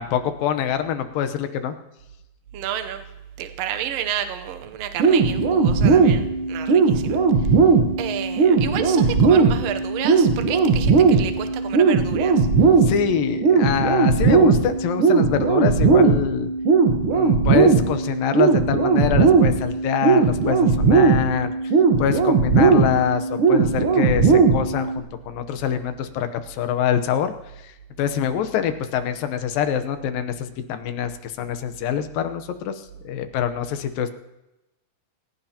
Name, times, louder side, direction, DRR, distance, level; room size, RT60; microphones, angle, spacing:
voice 1, 0.0-1.8 12.8-16.5 17.1-21.5 22.0-27.3 27.6-27.7 28.0-34.1, left 9 dB, 85° left, 9 dB, 2.7 m, -25 dB
voice 2, 2.5-3.0 3.4-7.5 8.0-12.5, right 10 dB, 75° right, 7 dB, 1.5 m, -31 dB
sound 1, 5.0-25.0, right 4 dB, 55° right, 1.6 m, -18 dB
28.5 x 16.0 x 2.9 m, 0.97 s
omnidirectional pair, 3.9 m